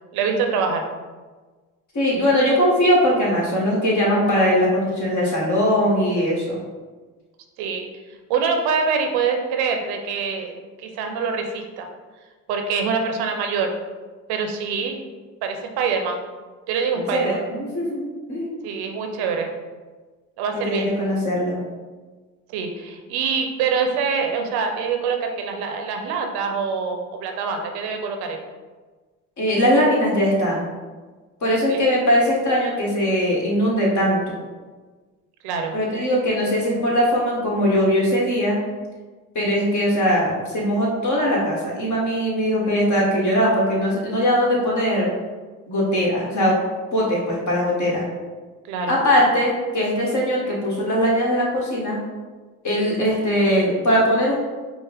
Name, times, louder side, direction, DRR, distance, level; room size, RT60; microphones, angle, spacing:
voice 1, 0.1-0.9 7.6-7.9 8.3-10.5 10.8-11.9 12.5-13.7 14.3-15.0 15.4-16.2 16.7-17.4 18.6-19.5 20.4-20.9 22.5-28.4 31.7-31.8 35.4-35.7 48.7-49.0, right 5 dB, 80° right, 4 dB, 0.6 m, -25 dB
voice 2, 1.9-6.5 16.9-18.5 20.5-21.6 29.4-30.7 31.4-34.4 35.7-38.6 39.3-45.1 45.7-46.6 46.9-48.1 48.9-52.0 52.6-54.4, equal, 50° left, -3 dB, 1.5 m, -20 dB
4.5 x 2.1 x 3.4 m, 1.3 s
supercardioid pair, 65°, 38 cm